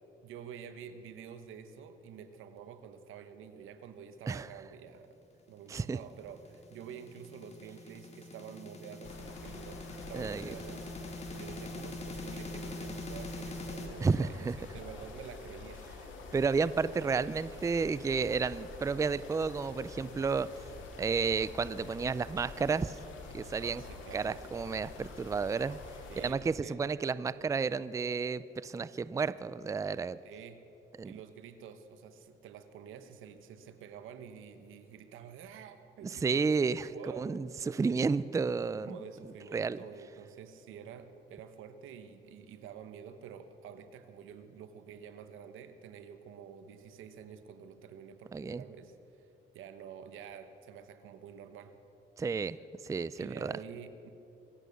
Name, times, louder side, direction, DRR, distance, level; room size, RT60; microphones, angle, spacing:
voice 1, 0.2-5.1 5.5-15.8 23.6-24.4 26.1-26.8 30.2-30.6 31.0-36.6 36.9-37.3 38.8-49.3 49.5-51.7 53.1-54.1, right 8 dB, 85° right, 10 dB, 1.1 m, -48 dB
sound 1, 5.8-13.9, left 2 dB, 35° left, 2.1 m, -44 dB
sound 2, 9.0-26.3, left 3 dB, 75° left, 2.4 m, -47 dB
voice 2, 10.1-10.5 14.0-14.5 16.3-20.5 21.0-23.0 23.3-23.8 24.1-25.8 26.2-30.2 31.0-31.1 36.0-36.9 37.2-39.0 39.5-39.8 48.3-48.6 52.2-52.6 52.8-53.5, right 5 dB, 15° right, 16 dB, 0.4 m, -31 dB
24.5 x 8.4 x 6.8 m, 2.9 s
cardioid pair, 90°, 20 cm